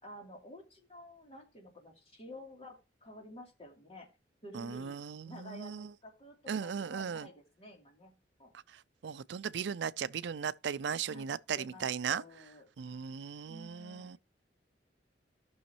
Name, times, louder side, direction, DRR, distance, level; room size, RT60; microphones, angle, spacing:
voice 1, 0.0-4.1 4.4-5.0 5.2-8.1 8.4-8.5 11.1-11.3 11.5-13.0 13.4-14.2, left 1 dB, 35° left, 3.0 m, -51 dB
voice 2, 4.5-5.9 6.5-7.3 8.7-12.2 12.8-14.2, right 7 dB, 75° right, 0.4 m, -37 dB
14.0 x 6.3 x 3.0 m
head